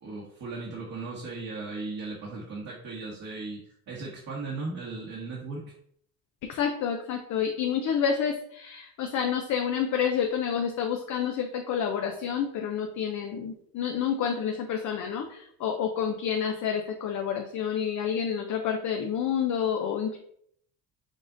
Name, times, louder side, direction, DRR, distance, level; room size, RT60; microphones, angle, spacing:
voice 1, 0.0-5.7, right 3 dB, 50° right, -4 dB, 1.3 m, -37 dB
voice 2, 6.4-20.2, left 7 dB, 55° left, 3 dB, 0.7 m, -29 dB
5.3 x 2.5 x 3.8 m, 0.66 s
cardioid pair, 95°, 36 cm